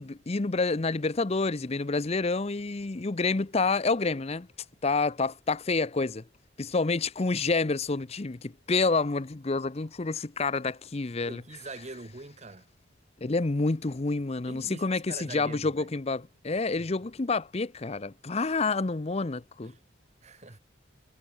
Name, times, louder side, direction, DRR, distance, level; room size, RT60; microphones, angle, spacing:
voice 1, 0.0-4.5 4.8-6.2 6.6-11.4 13.2-19.7, left 3 dB, 35° left, 0.7 m, -28 dB
voice 2, 11.2-12.7 14.5-15.9 16.5-16.6 19.6-19.8 20.2-20.6, right 3 dB, 35° right, 1.2 m, -44 dB
head